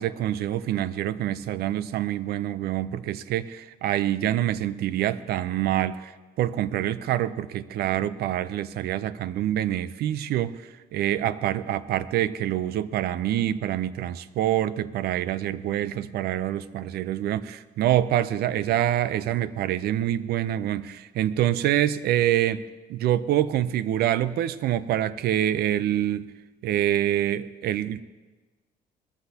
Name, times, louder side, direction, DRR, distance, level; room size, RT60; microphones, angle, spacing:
voice 1, 0.0-6.1 6.4-10.6 10.9-26.3 26.6-28.0, right 12 dB, 70° right, 16 dB, 0.6 m, -26 dB
20.0 x 14.0 x 2.9 m, 1.2 s
cardioid pair, 110°, 17 cm